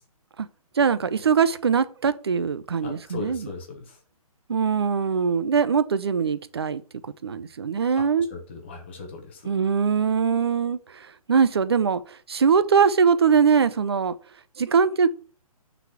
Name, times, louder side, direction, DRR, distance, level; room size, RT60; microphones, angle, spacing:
voice 1, 0.8-3.5 4.5-6.8 7.2-8.3 9.4-14.2 14.6-15.1, right 6 dB, 45° right, 0.5 m, -22 dB
voice 2, 2.8-4.0 8.0-9.5, left 4 dB, 20° left, 0.9 m, -38 dB
5.7 x 4.1 x 5.7 m
hypercardioid pair, 180°, 19 cm